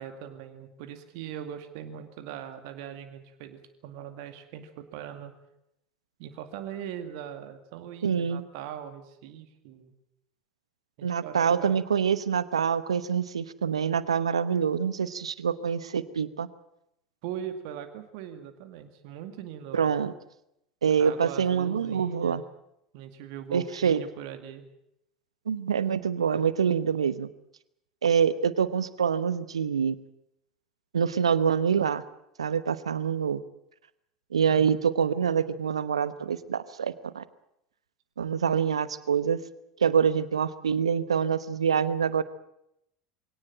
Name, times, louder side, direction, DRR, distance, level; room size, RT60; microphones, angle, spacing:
voice 1, 0.0-5.3 6.2-9.9 11.0-11.7 17.2-19.9 20.9-22.4 22.9-24.7 34.5-34.8, right 9 dB, 60° right, 8 dB, 2.2 m, -41 dB
voice 2, 8.0-8.4 11.0-16.5 19.7-20.1 20.8-22.4 23.5-24.0 25.5-27.3 28.0-30.0 30.9-32.0 32.4-33.4 34.3-37.2 38.2-39.4 39.8-42.2, right 7 dB, 80° right, 16 dB, 1.0 m, -25 dB
22.5 x 17.5 x 8.9 m, 0.80 s
figure-of-eight pair, 75°, 3 cm